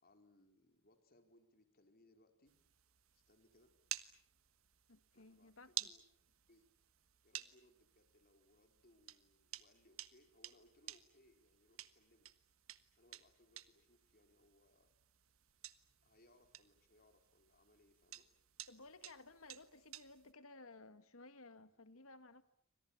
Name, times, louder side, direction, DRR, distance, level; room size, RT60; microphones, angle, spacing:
voice 1, 0.0-2.5 3.1-3.7 5.1-6.0 6.3-6.7 7.2-12.3 12.9-14.9 16.0-18.3, left 1 dB, 45° left, 6 dB, 4.4 m, -70 dB
sound 1, 2.5-20.3, right 13 dB, 80° right, 1.4 m, -53 dB
voice 2, 4.9-5.9 18.7-22.4, left 3 dB, 80° left, 11 dB, 1.9 m, -58 dB
29.5 x 25.5 x 7.3 m, 0.64 s
head